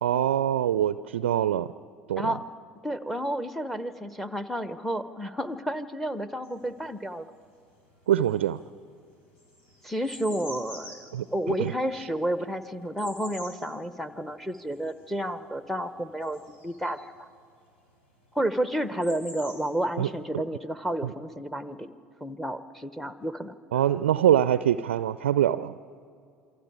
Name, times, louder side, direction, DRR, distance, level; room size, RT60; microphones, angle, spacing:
voice 1, 0.0-1.7 2.1-2.3 8.1-8.6 11.1-12.1 20.0-20.1 21.0-21.1 23.7-25.7, right 11 dB, 70° right, 16 dB, 0.4 m, -24 dB
voice 2, 2.8-7.3 9.8-17.3 18.3-21.9 22.2-23.5, right 1 dB, 5° left, 12 dB, 1.1 m, -31 dB
sound 1, 6.4-7.6 7.9-17.2 18.3-18.4 18.6-20.1, left 1 dB, 70° left, 4.5 m, -47 dB
27.5 x 24.5 x 4.9 m, 2.4 s
figure-of-eight pair, 65°, 6 cm